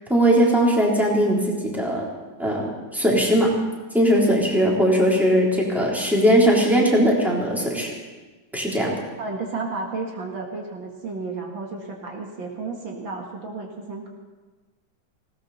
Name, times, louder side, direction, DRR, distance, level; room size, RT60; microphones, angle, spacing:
voice 1, 0.1-2.0 2.4-3.5 3.9-7.9 8.5-8.9, equal, ahead, -4 dB, 3.4 m, -19 dB
voice 2, 9.2-14.1, right 3 dB, 65° right, 0 dB, 2.5 m, -32 dB
19.5 x 17.0 x 4.2 m, 1.3 s
omnidirectional pair, 2.2 m